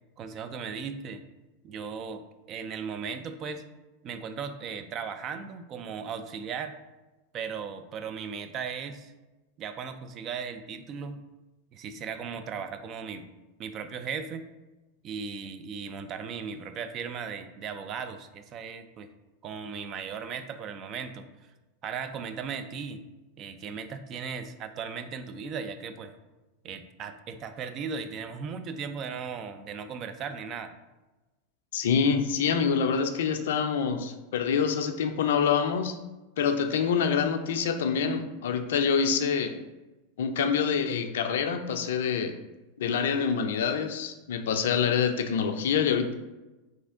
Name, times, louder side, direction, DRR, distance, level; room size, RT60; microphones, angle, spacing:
voice 1, 0.2-1.2 1.6-3.6 4.0-6.8 7.3-9.1 9.6-11.2 11.7-13.2 13.6-14.4 15.0-19.1 19.4-21.3 21.8-23.0 23.4-26.1 26.6-30.7, right 6 dB, 40° right, 9 dB, 0.3 m, -37 dB
voice 2, 31.7-36.0 36.4-39.5 40.2-42.3 42.8-46.1, left 6 dB, 65° left, 7 dB, 0.3 m, -26 dB
3.2 x 2.7 x 3.5 m, 1.1 s
figure-of-eight pair, 85°, 0 cm